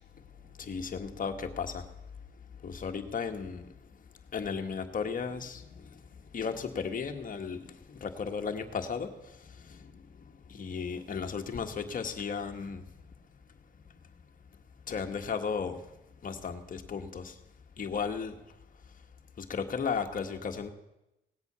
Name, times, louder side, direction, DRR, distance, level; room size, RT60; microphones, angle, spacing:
voice 1, 0.6-1.8 2.6-3.7 4.3-5.9 6.3-9.1 9.6-9.9 10.5-12.8 14.9-15.8 16.2-17.3 17.8-18.3 19.4-20.7, left 6 dB, 45° left, 5 dB, 1.6 m, -35 dB
18.0 x 8.2 x 6.9 m, 0.92 s
cardioid pair, 90°, 20 cm